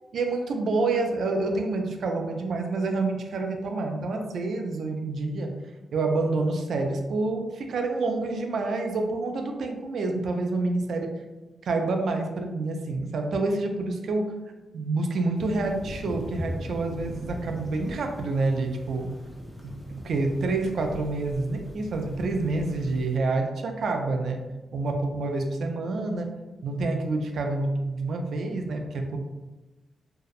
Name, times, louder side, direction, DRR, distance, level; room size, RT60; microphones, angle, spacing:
voice 1, 0.1-5.5 5.9-11.1 11.7-14.3 14.7-19.1 19.6-24.5 24.7-26.3 26.6-29.2, right 3 dB, 70° right, 4 dB, 0.3 m, -28 dB
sound 1, 15.3-23.2, equal, ahead, 0.5 m, -40 dB
2.6 x 2.0 x 2.3 m, 1.1 s
cardioid pair, 95°, 0 cm